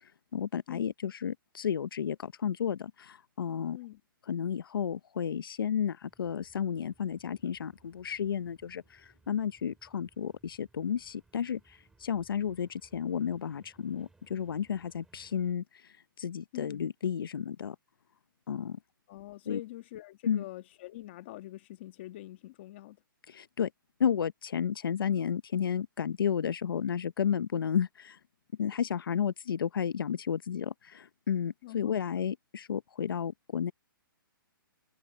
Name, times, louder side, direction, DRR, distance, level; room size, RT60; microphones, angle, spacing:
voice 1, 0.3-3.8 4.3-15.6 16.2-17.7 18.5-18.8 19.5-19.6 20.3-20.4 23.3-23.7 24.0-28.2 28.6-33.7, left 8 dB, 75° left, 0.8 m, -32 dB
sound 1, 6.0-15.5, right 3 dB, 5° right, 3.4 m, -65 dB
voice 2, 16.5-16.9 19.1-23.0 31.6-31.9, left 15 dB, 30° left, 1.6 m, -44 dB
hypercardioid pair, 170°, 12 cm